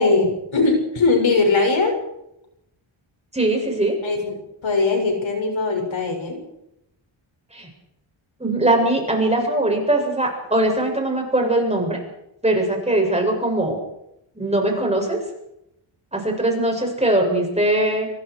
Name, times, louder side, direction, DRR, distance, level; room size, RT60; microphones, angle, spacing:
voice 1, 0.0-2.0 4.0-4.4 4.6-6.4, left 3 dB, 65° left, 2 dB, 7.1 m, -20 dB
voice 2, 3.3-3.9 7.5-7.7 8.4-12.0 12.4-13.8 14.3-15.2 16.1-18.1, right 1 dB, 15° right, 1 dB, 7.8 m, -21 dB
26.0 x 25.0 x 5.0 m, 0.82 s
wide cardioid pair, 100°, 50 cm